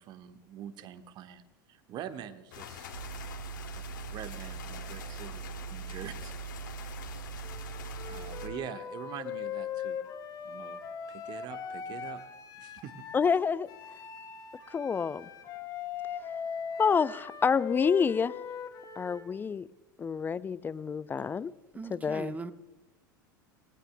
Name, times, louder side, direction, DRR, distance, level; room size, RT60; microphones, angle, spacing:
voice 1, 0.0-1.4 1.7-2.9 3.7-3.8 4.1-6.3 6.8-6.9 8.1-10.0 10.4-10.8 11.1-12.2 12.6-12.9, right 10 dB, 40° right, 1.3 m, -44 dB
sound 1, 2.5-8.5, left 7 dB, 65° left, 2.3 m, -45 dB
sound 2, 2.9-8.6, right 8 dB, 90° right, 0.5 m, -42 dB
Wind instrument woodwind instrument, 7.4-13.3 13.7-19.3, left 7 dB, 40° left, 2.6 m, -40 dB
voice 2, 13.1-13.7 14.7-15.3 16.8-18.3 19.0-19.7 20.0-21.5 21.9-22.3, left 6 dB, 20° left, 0.4 m, -28 dB
voice 3, 21.7-22.5, right 3 dB, 15° right, 1.1 m, -39 dB
28.0 x 19.0 x 2.2 m
figure-of-eight pair, 80°, 11 cm